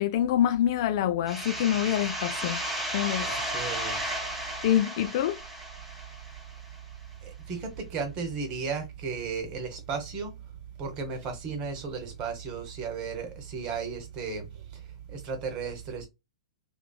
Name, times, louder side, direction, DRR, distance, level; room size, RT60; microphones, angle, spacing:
voice 1, 0.0-2.6 2.9-3.3 4.6-5.4, left 11 dB, 50° left, 0.5 m, -26 dB
sound 1, 1.3-6.8, right 1 dB, 10° right, 1.0 m, -34 dB
voice 2, 3.2-4.0 7.2-10.4 10.8-14.4 14.7-14.8 15.1-16.1, right 5 dB, 35° right, 1.1 m, -34 dB
3.0 x 2.6 x 2.3 m
hypercardioid pair, 110°, 3 cm